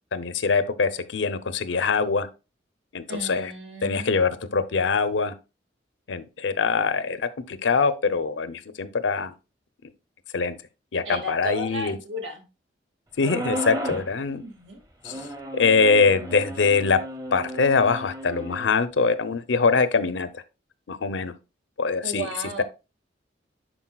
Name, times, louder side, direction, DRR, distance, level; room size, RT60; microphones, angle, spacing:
voice 1, 0.1-2.3 2.9-3.5 3.8-5.3 6.1-9.3 10.3-10.6 10.9-12.0 13.2-14.4 15.0-15.1 15.5-17.0 17.3-20.4 20.9-21.3 21.8-22.3, left 4 dB, 90° left, 0.6 m, -23 dB
voice 2, 3.1-4.2 11.1-12.4 14.3-14.8 22.0-22.6, right 1 dB, 90° right, 1.8 m, -34 dB
sound 1, 13.2-14.1 15.0-18.7, right 1 dB, 20° right, 0.7 m, -34 dB
10.0 x 4.5 x 2.3 m
head